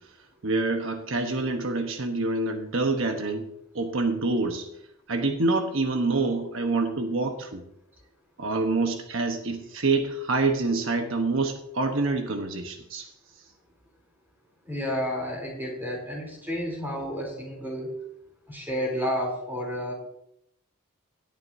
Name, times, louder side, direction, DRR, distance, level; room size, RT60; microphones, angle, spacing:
voice 1, 0.4-3.5 3.7-4.7 5.1-7.6 8.4-13.1, right 3 dB, 65° right, 5 dB, 1.1 m, -26 dB
voice 2, 14.7-18.0 18.5-19.9, equal, 10° right, -2 dB, 3.5 m, -31 dB
17.5 x 8.9 x 2.8 m, 0.76 s
head